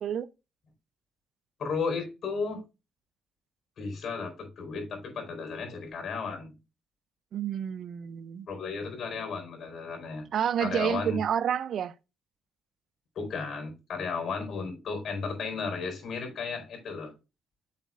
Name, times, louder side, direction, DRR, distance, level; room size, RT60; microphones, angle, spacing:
voice 1, 1.6-2.6 3.8-6.6 8.5-10.3 10.6-11.2 13.1-17.1, left 5 dB, 60° left, 4.5 m, -34 dB
voice 2, 7.3-8.5 10.3-11.9, right 9 dB, 65° right, 0.5 m, -29 dB
8.3 x 7.4 x 2.4 m
cardioid pair, 90°, 0 cm